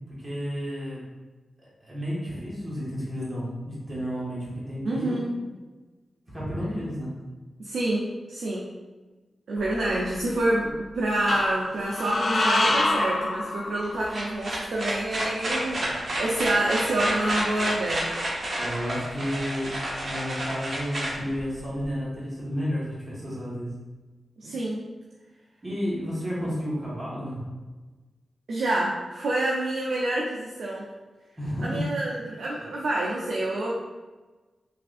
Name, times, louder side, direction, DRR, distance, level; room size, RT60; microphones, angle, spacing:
voice 1, 0.1-1.0 1.8-5.4 6.3-7.2 18.6-19.7 20.0-23.7 25.6-27.4 31.4-31.8, equal, 30° right, -7 dB, 1.3 m, -31 dB
voice 2, 4.8-5.2 7.6-8.0 8.3-8.7 9.5-18.0 24.4-24.8 28.5-30.9 31.6-33.8, right 1 dB, 85° right, -4 dB, 0.4 m, -27 dB
sound 1, 9.6-10.4 11.3-14.2, left 2 dB, 50° left, 0.4 m, -27 dB
sound 2, 13.8-21.9, right 1 dB, 55° right, 0.8 m, -30 dB
3.3 x 2.4 x 2.5 m, 1.2 s
cardioid pair, 60°, 0 cm